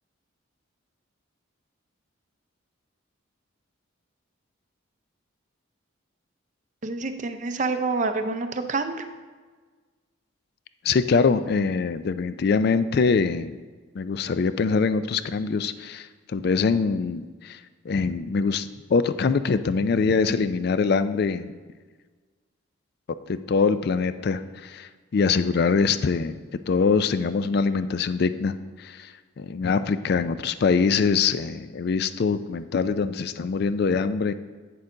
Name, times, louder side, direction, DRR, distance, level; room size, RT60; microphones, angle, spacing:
voice 1, 6.8-9.1, right 3 dB, 35° right, 8 dB, 0.5 m, -27 dB
voice 2, 10.8-13.6 13.9-17.6 17.9-21.5 23.3-26.4 26.7-34.3, left 5 dB, 50° left, 12 dB, 0.3 m, -24 dB
8.4 x 6.6 x 3.8 m, 1.4 s
head